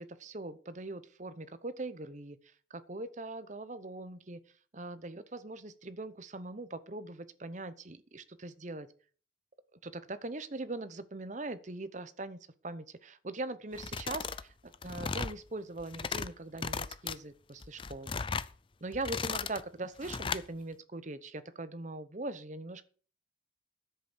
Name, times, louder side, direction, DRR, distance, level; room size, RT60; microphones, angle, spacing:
voice 1, 0.0-2.4 2.7-4.4 4.7-8.9 9.8-12.4 12.6-18.2 18.8-22.8, right 2 dB, 40° right, 13 dB, 0.8 m, -41 dB
sound 1, 13.7-14.4 14.7-15.4 15.8-16.3 16.6-17.2 17.6-18.5 18.9-19.6 20.0-20.4, left 5 dB, 25° left, 0.4 m, -36 dB
10.0 x 8.0 x 6.2 m, 0.42 s
head